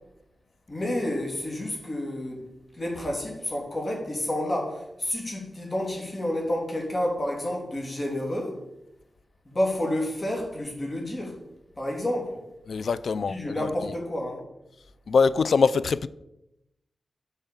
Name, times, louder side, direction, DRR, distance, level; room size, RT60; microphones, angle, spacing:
voice 1, 0.7-2.4 2.7-8.6 9.4-11.4 11.8-12.4 13.3-14.4, left 1 dB, 35° left, 3.0 m, -30 dB
voice 2, 12.7-13.9 15.1-16.1, left 5 dB, 75° left, 0.4 m, -23 dB
8.9 x 5.4 x 7.2 m
cardioid pair, 45°, 0 cm